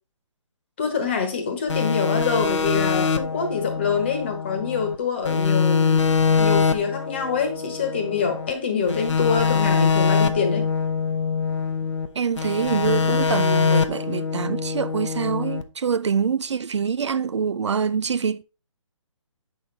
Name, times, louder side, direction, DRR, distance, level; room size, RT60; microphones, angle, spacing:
voice 1, 0.8-6.1 6.3-10.7, left 5 dB, 20° left, 1.3 m, -25 dB
sound 1, 1.7-5.0 5.3-8.5 8.9-12.1 12.4-15.6, left 5 dB, 65° left, 0.8 m, -23 dB
voice 2, 12.2-18.4, right 6 dB, 60° right, 0.4 m, -25 dB
8.7 x 6.2 x 3.3 m
hypercardioid pair, 175°, 17 cm